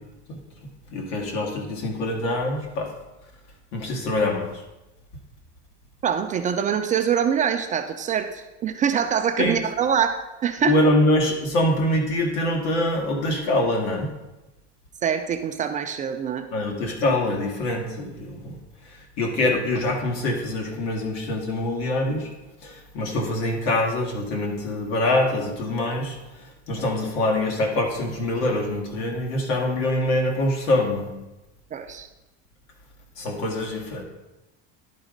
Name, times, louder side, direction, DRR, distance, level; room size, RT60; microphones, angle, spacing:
voice 1, 0.9-2.9 3.7-4.5 9.4-9.6 10.6-14.1 16.5-18.6 18.9-22.3 22.6-26.2 26.7-31.1 33.2-34.0, left 1 dB, 80° left, 1 dB, 2.1 m, -24 dB
voice 2, 6.0-10.8 15.0-16.4 31.7-32.1, right 8 dB, 25° right, 6 dB, 0.4 m, -24 dB
11.0 x 4.0 x 5.1 m, 1.0 s
cardioid pair, 155°, 32 cm